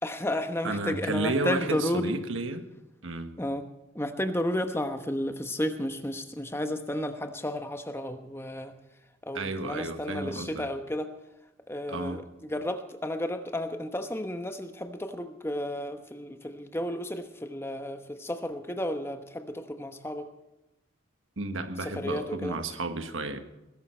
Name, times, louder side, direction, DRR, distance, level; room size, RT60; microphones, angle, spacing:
voice 1, 0.0-2.2 3.4-3.7 3.9-8.7 9.2-11.1 11.7-20.3 21.8-22.6, left 1 dB, 10° left, 1.1 m, -32 dB
voice 2, 0.6-2.6 3.0-3.4 9.3-10.7 11.9-12.2 21.4-23.4, right 2 dB, 70° right, 1.4 m, -32 dB
20.0 x 11.0 x 4.4 m
head